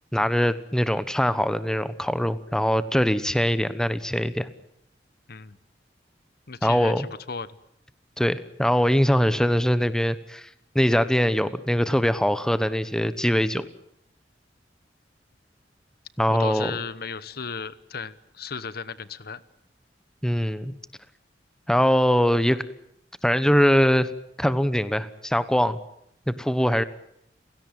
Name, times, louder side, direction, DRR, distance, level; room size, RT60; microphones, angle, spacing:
voice 1, 0.1-4.5 6.6-7.1 8.2-10.5 10.7-13.7 16.2-16.8 20.2-20.8 21.7-22.6 23.2-24.1 24.4-25.8 26.3-26.8, equal, 5° left, 14 dB, 1.1 m, -22 dB
voice 2, 6.5-7.5 16.3-19.4, left 5 dB, 60° left, 16 dB, 1.1 m, -35 dB
30.0 x 17.0 x 9.0 m, 0.75 s
head